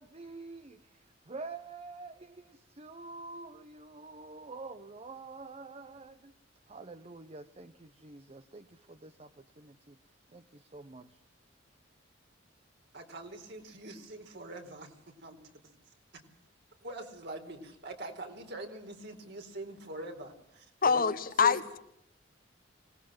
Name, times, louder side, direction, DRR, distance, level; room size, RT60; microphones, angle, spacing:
voice 1, 0.0-6.3 6.7-10.0 10.3-11.2, right 3 dB, 35° right, 10 dB, 1.0 m, -47 dB
voice 2, 12.9-14.9 15.2-15.4 16.8-21.0 21.4-21.6, right 1 dB, 60° right, 4 dB, 4.3 m, -43 dB
voice 3, 20.8-21.8, left 6 dB, 50° left, 12 dB, 1.2 m, -25 dB
25.0 x 19.5 x 7.6 m, 0.78 s
head